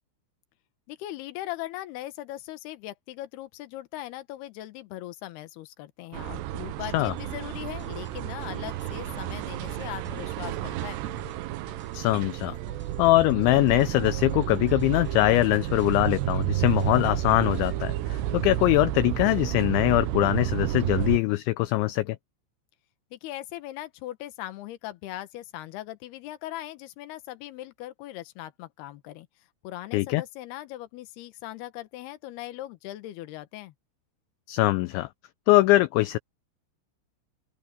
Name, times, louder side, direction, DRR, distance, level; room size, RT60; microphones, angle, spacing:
voice 1, 0.9-11.0 23.1-29.3 29.6-33.7, left 15 dB, 70° left, 2.6 m, -39 dB
sound 1, 6.1-21.2, right 14 dB, 85° right, 2.5 m, -31 dB
sound 2, 6.9-17.8, equal, ahead, 4.1 m, -49 dB
voice 2, 11.9-12.6 13.0-22.2 29.9-30.2 34.5-35.1 35.5-36.2, left 18 dB, 90° left, 2.6 m, -22 dB
open air
omnidirectional pair, 5.9 m